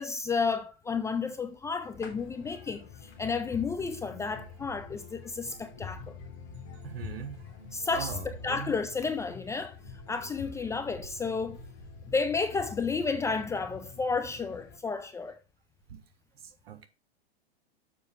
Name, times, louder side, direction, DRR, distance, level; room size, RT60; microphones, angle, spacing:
voice 1, 0.0-6.1 7.7-9.8 10.1-11.6 12.1-15.4, left 4 dB, 10° left, 0.4 m, -32 dB
sound 1, 1.9-14.8, left 8 dB, 45° left, 3.0 m, -47 dB
sound 2, 4.2-13.6 15.3-15.4, right 1 dB, 50° right, 4.8 m, -50 dB
voice 2, 6.8-7.4 7.9-8.7 15.9-16.0 16.4-16.9, right 8 dB, 70° right, 1.4 m, -41 dB
7.0 x 5.5 x 5.0 m
hypercardioid pair, 110°, 32 cm